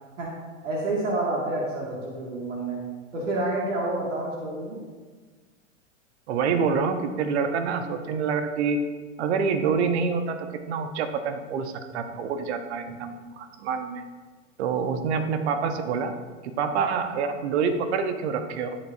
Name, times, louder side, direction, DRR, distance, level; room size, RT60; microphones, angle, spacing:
voice 1, 0.6-2.8 3.1-4.8, right 2 dB, 75° right, -3 dB, 2.2 m, -28 dB
voice 2, 6.3-8.8 9.2-14.0 14.6-16.1 16.4-18.8, right 5 dB, 60° right, 8 dB, 1.1 m, -27 dB
13.5 x 7.6 x 2.7 m, 1.4 s
hypercardioid pair, 100°, 38 cm